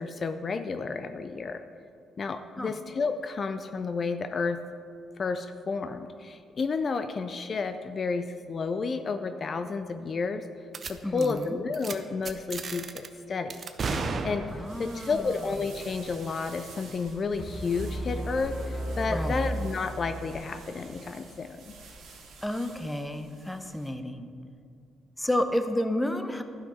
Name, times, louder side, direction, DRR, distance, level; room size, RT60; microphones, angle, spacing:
voice 1, 0.0-1.6 2.2-4.6 5.2-10.5 10.9-13.5 14.2-14.5 14.8-21.7, left 4 dB, 45° left, 9 dB, 0.4 m, -31 dB
sound 1, 10.7-10.9 11.2-11.4 11.7-11.9 12.2-13.1 13.5-14.8, right 4 dB, 45° right, 0.7 m, -33 dB
voice 2, 11.0-11.6 14.5-15.3 19.1-19.5 22.4-24.3 25.2-26.4, left 1 dB, 5° left, 8 dB, 0.7 m, -31 dB
sound 2, 14.4-23.9, right 3 dB, 85° right, 1.8 m, -49 dB
sound 3, 17.4-20.4, equal, 25° left, 2.5 m, -34 dB
12.5 x 5.8 x 4.2 m, 2.3 s
cardioid pair, 90°, 0 cm